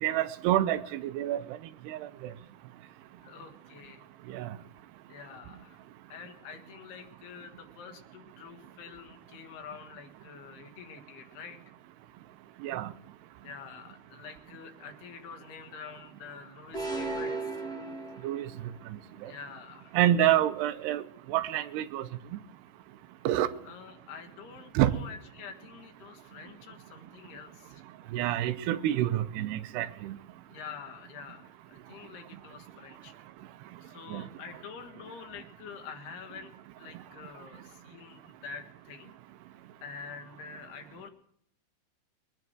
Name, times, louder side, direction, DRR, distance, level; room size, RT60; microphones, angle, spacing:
voice 1, 0.0-1.4 1.9-2.0 4.3-4.5 12.6-12.9 18.2-18.5 19.2-19.3 19.9-21.0 21.3-22.1 23.3-23.5 24.8-24.9 28.1-30.2 34.1-34.3, right 12 dB, 90° right, 12 dB, 2.9 m, -27 dB
voice 2, 3.2-4.1 5.1-5.8 6.1-11.6 13.4-17.7 19.3-20.0 23.7-27.8 30.5-33.2 33.8-36.5 36.8-39.2 39.8-41.1, left 6 dB, 80° left, 5 dB, 3.6 m, -47 dB
sound 1, 16.7-18.7, right 3 dB, 5° left, 0.6 m, -35 dB
22.5 x 10.5 x 4.7 m, 0.70 s
omnidirectional pair, 4.6 m